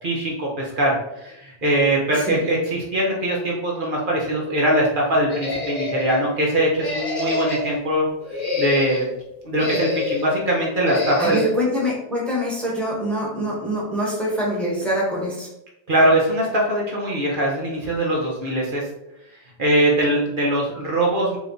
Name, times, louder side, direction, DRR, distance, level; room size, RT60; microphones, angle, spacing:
voice 1, 0.0-8.1 8.6-9.1 9.4-11.4 15.9-18.8 19.6-21.4, right 1 dB, 55° right, -3 dB, 1.0 m, -21 dB
sound 1, 5.3-6.2 6.8-7.8 8.2-9.1 9.6-10.3 10.9-11.5, left 3 dB, 45° left, 1.1 m, -27 dB
voice 2, 11.2-15.5, equal, ahead, -5 dB, 1.1 m, -24 dB
3.4 x 2.9 x 3.8 m, 0.86 s
omnidirectional pair, 1.1 m